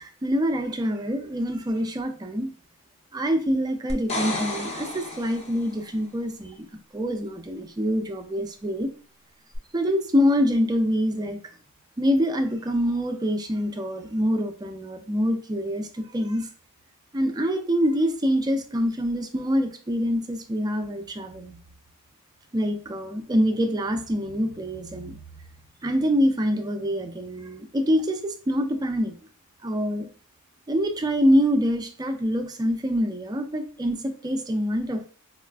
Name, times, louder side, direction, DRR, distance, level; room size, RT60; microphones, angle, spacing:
voice 1, 0.0-2.5 3.1-6.7 6.9-8.9 9.7-11.5 12.0-16.5 17.1-21.6 22.5-25.2 25.8-29.1 29.6-30.1 30.7-35.1, equal, 20° right, 5 dB, 0.3 m, -25 dB
sound 1, 3.9-5.8 9.5-9.6, left 2 dB, 30° left, 0.6 m, -32 dB
4.0 x 2.4 x 2.2 m, 0.40 s
head